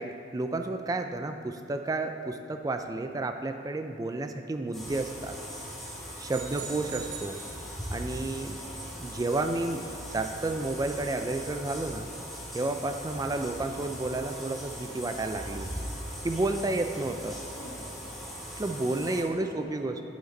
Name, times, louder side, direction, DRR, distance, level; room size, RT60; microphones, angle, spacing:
voice 1, 0.0-5.4 6.2-7.4 7.9-8.6 9.0-9.9 10.1-12.1 12.5-15.9 16.2-17.4 18.6-20.0, right 2 dB, 20° right, 7 dB, 0.3 m, -31 dB
sound 1, 4.7-19.2, equal, ahead, 2.0 m, -40 dB
sound 2, 6.3-8.1, right 7 dB, 45° right, 0.9 m, -43 dB
voice 2, 6.5-6.8 8.5-8.9 17.4-18.2 18.7-20.0, equal, 75° left, -4 dB, 2.1 m, -49 dB
9.4 x 8.1 x 3.9 m, 2.4 s
head